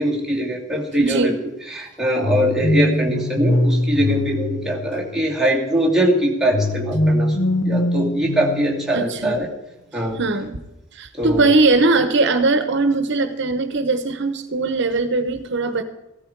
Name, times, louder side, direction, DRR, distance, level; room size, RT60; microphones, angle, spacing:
voice 1, 0.0-1.3 1.6-9.5 9.9-10.2 11.1-11.5, right 1 dB, ahead, -3 dB, 2.6 m, -22 dB
voice 2, 1.0-1.3 8.9-9.4 10.2-10.6 11.0-15.8, right 3 dB, 60° right, 10 dB, 1.0 m, -20 dB
sound 1, 2.2-5.4 6.5-9.4, left 1 dB, 80° left, 1.1 m, -22 dB
15.5 x 13.0 x 4.7 m, 0.98 s
head